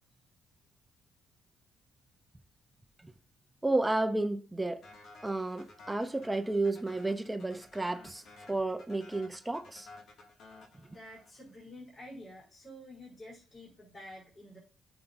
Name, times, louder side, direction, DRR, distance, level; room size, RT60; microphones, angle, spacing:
voice 1, 3.6-4.8 5.2-9.9, right 2 dB, 10° right, 0.6 m, -32 dB
sound 1, 4.8-11.5, left 3 dB, 70° left, 2.2 m, -54 dB
voice 2, 10.8-14.6, left 1 dB, 35° left, 4.5 m, -49 dB
9.1 x 7.0 x 2.6 m
cardioid pair, 90°, 0 cm